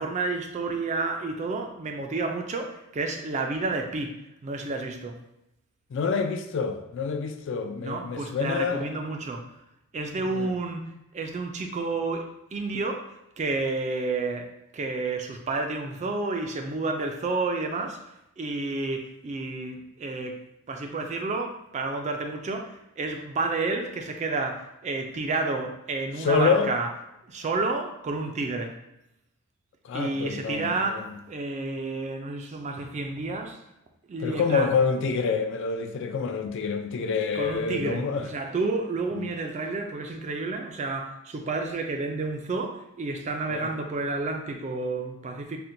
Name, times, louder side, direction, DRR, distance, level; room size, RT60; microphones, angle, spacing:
voice 1, 0.0-4.1 4.4-5.2 7.8-9.4 9.9-13.0 13.4-14.5 14.7-18.0 18.4-20.4 20.7-26.9 27.3-28.7 29.9-33.6 34.1-34.7 37.3-45.6, right 3 dB, 30° right, 4 dB, 0.3 m, -30 dB
voice 2, 5.9-8.9 10.3-10.5 26.2-26.7 29.8-31.1 34.2-38.3 39.1-39.3 43.5-43.7, left 5 dB, 55° left, 7 dB, 0.3 m, -27 dB
4.2 x 2.1 x 2.6 m, 0.87 s
head